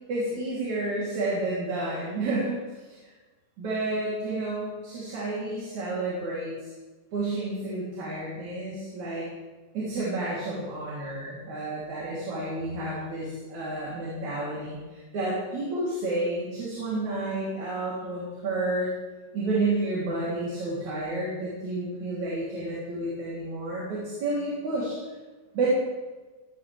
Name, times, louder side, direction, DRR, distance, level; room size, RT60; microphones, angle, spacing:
voice 1, 0.1-2.6 3.6-6.7 7.1-9.3 9.7-18.9 19.3-25.0 25.5-25.8, right 2 dB, 75° right, -7 dB, 5.0 m, -30 dB
18.5 x 17.5 x 3.6 m, 1.2 s
omnidirectional pair, 3.3 m